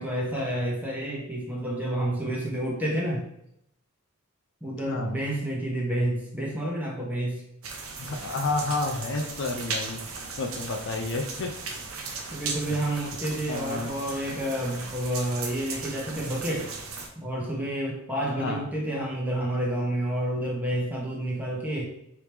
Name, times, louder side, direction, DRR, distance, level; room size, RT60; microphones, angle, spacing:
voice 1, 0.0-3.3 4.6-7.4 12.3-16.7 17.2-21.8, right 1 dB, 10° right, -3 dB, 1.0 m, -29 dB
voice 2, 4.9-5.2 8.0-10.0 10.4-11.5 12.7-12.8 13.5-14.0 18.4-18.7, left 3 dB, 60° left, 5 dB, 0.5 m, -30 dB
sound 1, 7.6-17.1, right 4 dB, 80° right, 0.8 m, -37 dB
4.8 x 3.0 x 3.3 m, 0.76 s
head